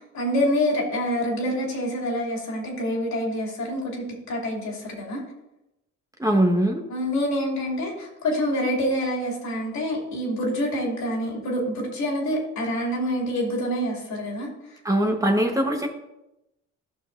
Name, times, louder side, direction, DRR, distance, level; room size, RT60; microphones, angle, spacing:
voice 1, 0.1-5.2 6.9-14.8, equal, 70° left, -2 dB, 2.8 m, -27 dB
voice 2, 6.2-6.8 14.8-15.9, right 1 dB, 10° right, 2 dB, 1.2 m, -21 dB
14.0 x 5.9 x 2.6 m, 0.92 s
cardioid pair, 90°, 30 cm